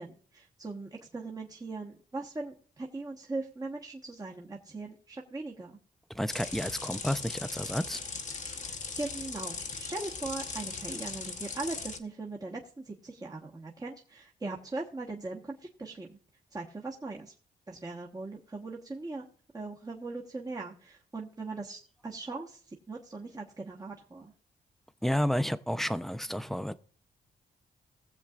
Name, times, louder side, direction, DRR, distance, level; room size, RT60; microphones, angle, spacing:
voice 1, 0.0-5.8 8.6-16.2 16.5-17.3 17.7-19.3 19.5-24.3, right 3 dB, 20° right, 1.2 m, -40 dB
voice 2, 6.1-8.0 25.0-26.7, equal, ahead, 0.5 m, -31 dB
sound 1, 6.3-12.0, left 4 dB, 45° left, 0.9 m, -39 dB
20.0 x 7.3 x 2.4 m
cardioid pair, 85°, 18 cm